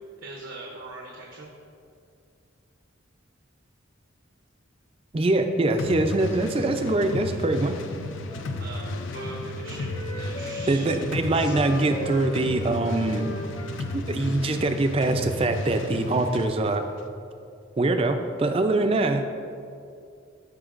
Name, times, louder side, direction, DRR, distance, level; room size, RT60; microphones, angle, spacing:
voice 1, 0.2-1.5 8.5-12.1, right 2 dB, 80° right, -1 dB, 0.8 m, -41 dB
voice 2, 5.1-7.8 10.7-13.3 13.9-16.8 17.8-19.2, right 2 dB, 30° right, 7 dB, 0.4 m, -23 dB
sound 1, 5.8-16.5, left 2 dB, 75° left, 0.5 m, -34 dB
Wind instrument woodwind instrument, 8.0-11.0 11.4-14.8, equal, 30° left, 0.8 m, -39 dB
13.0 x 5.3 x 2.5 m, 2.4 s
head